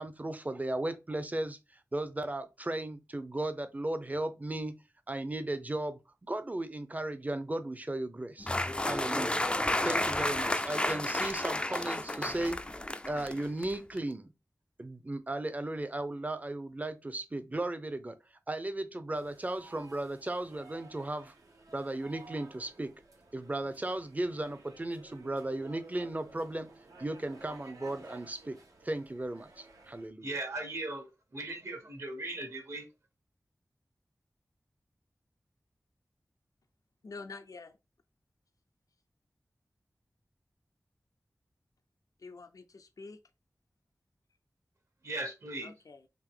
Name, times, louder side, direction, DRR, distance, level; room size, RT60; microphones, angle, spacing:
voice 1, 0.0-1.6 1.9-4.8 5.1-8.5 8.8-9.4 9.8-12.6 13.0-14.3 14.8-18.2 18.5-21.3 21.7-22.9 23.3-26.7 27.0-28.6 28.8-30.3, right 1 dB, 25° right, 0.6 m, -36 dB
sound 1, 8.4-14.0, left 1 dB, 15° left, 0.3 m, -32 dB
sound 2, 19.1-30.1, right 2 dB, 80° right, 1.0 m, -55 dB
voice 2, 30.2-32.9 45.0-45.7, right 2 dB, 55° right, 1.2 m, -38 dB
voice 3, 37.0-37.8 42.2-43.2 45.6-46.1, left 4 dB, 75° left, 0.5 m, -47 dB
3.7 x 2.6 x 3.7 m
wide cardioid pair, 60°, 6 cm